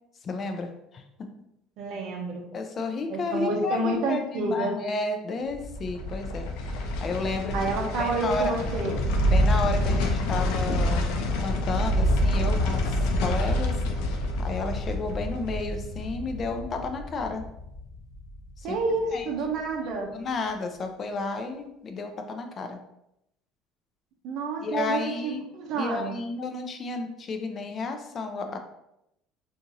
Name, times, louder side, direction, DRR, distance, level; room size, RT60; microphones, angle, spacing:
voice 1, 0.2-1.0 2.5-6.5 7.0-7.5 8.0-8.6 9.3-11.1 11.4-13.8 14.4-17.5 18.6-18.8 19.1-19.3 20.1-22.8 24.6-25.4 25.7-28.6, left 3 dB, 25° left, 5 dB, 0.4 m, -32 dB
voice 2, 1.8-2.4 3.1-4.8 7.5-9.0 18.6-20.1 24.2-26.1, right 3 dB, 50° right, 2 dB, 0.7 m, -29 dB
sound 1, 5.5-18.7 19.0-19.1, left 1 dB, 80° left, 0.5 m, -27 dB
2.8 x 2.5 x 3.9 m, 0.82 s
cardioid pair, 170°, 0 cm